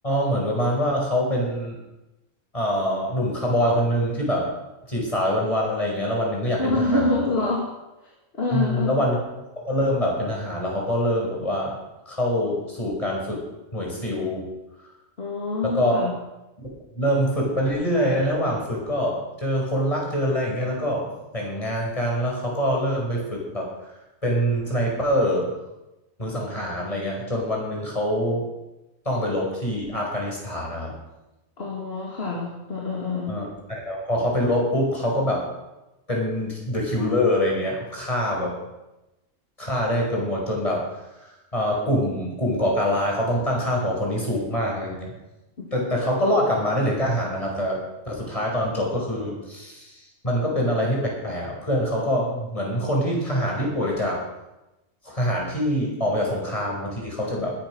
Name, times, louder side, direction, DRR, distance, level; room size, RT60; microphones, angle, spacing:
voice 1, 0.0-1.8 2.5-4.5 4.9-7.1 8.5-9.2 9.6-11.8 12.1-13.4 13.7-14.4 15.6-16.1 16.6-21.1 21.3-23.7 24.2-25.5 26.2-28.5 29.1-30.9 33.3-35.5 36.1-38.6 39.6-40.8 41.2-45.1 45.7-47.8 48.1-50.0 50.2-54.2 55.0-57.5, equal, 25° left, -2 dB, 5.4 m, -25 dB
voice 2, 6.6-7.7 8.3-9.0 15.2-16.1 31.6-33.4 45.6-45.7, left 2 dB, 45° left, -3 dB, 2.7 m, -26 dB
20.5 x 9.1 x 6.4 m, 0.98 s
omnidirectional pair, 1.4 m